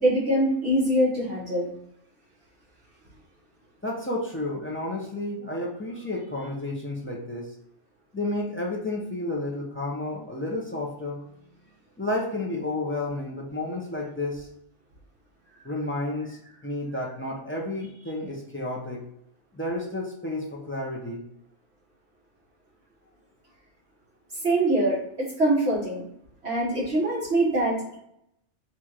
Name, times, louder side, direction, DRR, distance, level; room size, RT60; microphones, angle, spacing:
voice 1, 0.0-1.7 24.4-26.0 26.4-27.9, right 1 dB, 55° right, -9 dB, 1.6 m, -23 dB
voice 2, 3.8-7.5 8.1-11.2 12.0-14.5 15.6-19.0 19.5-21.2, left 2 dB, 15° left, -3 dB, 0.6 m, -31 dB
4.4 x 2.5 x 4.4 m, 0.76 s
omnidirectional pair, 1.3 m